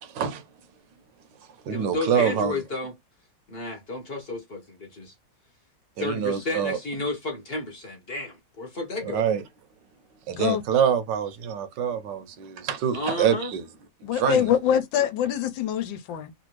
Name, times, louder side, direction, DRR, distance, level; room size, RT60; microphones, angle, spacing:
voice 1, 0.0-0.4 1.7-2.6 6.0-6.8 9.0-9.4 10.3-13.6 14.1-14.5, right 8 dB, 75° right, 1.3 m, -25 dB
voice 2, 1.6-2.9 3.5-5.1 6.0-9.3 12.9-13.5, left 2 dB, 40° left, 0.9 m, -32 dB
voice 3, 10.3-10.6 14.0-16.3, left 9 dB, 80° left, 1.4 m, -24 dB
3.3 x 2.6 x 3.0 m
omnidirectional pair, 2.0 m